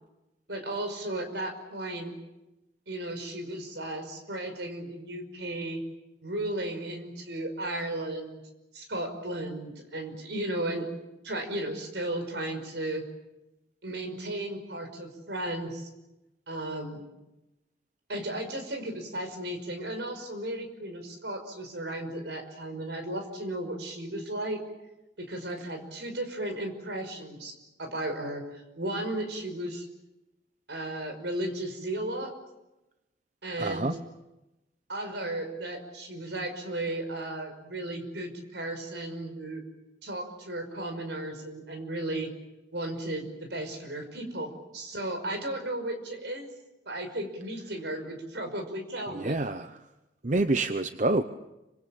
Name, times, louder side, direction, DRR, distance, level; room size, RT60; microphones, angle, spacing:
voice 1, 0.5-2.1 2.9-5.8 6.2-8.4 8.7-10.9 11.2-13.0 13.8-15.9 16.5-17.0 18.1-24.6 25.2-29.9 30.7-32.3 33.4-33.9 34.9-39.6 40.0-42.3 42.7-46.5 46.9-49.4, right 1 dB, 70° right, 6 dB, 5.5 m, -35 dB
voice 2, 33.6-34.0 49.1-49.8 50.2-51.2, right 2 dB, 40° right, 9 dB, 0.8 m, -27 dB
27.5 x 26.0 x 7.3 m, 0.98 s
head